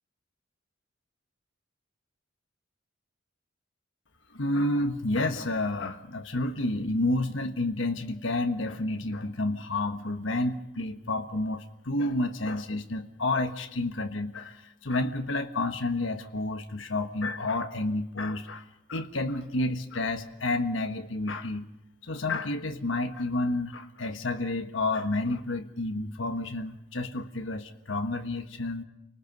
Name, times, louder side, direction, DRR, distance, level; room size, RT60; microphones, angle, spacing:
voice 1, 4.3-18.6 18.9-21.7 22.0-28.8, left 2 dB, 75° left, 6 dB, 1.4 m, -30 dB
29.5 x 19.5 x 5.4 m, 0.88 s
head